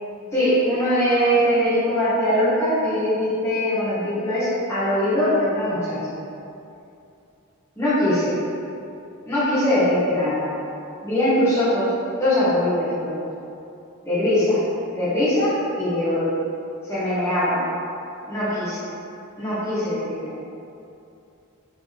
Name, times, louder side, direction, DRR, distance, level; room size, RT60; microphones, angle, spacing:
voice 1, 0.3-6.0 7.8-8.3 9.3-10.4 11.0-11.9 12.2-13.1 14.0-14.6 14.9-16.3 16.9-17.6 18.3-18.8 19.4-20.4, left 1 dB, 10° left, -12 dB, 1.3 m, -21 dB
4.0 x 3.5 x 3.7 m, 2.7 s
head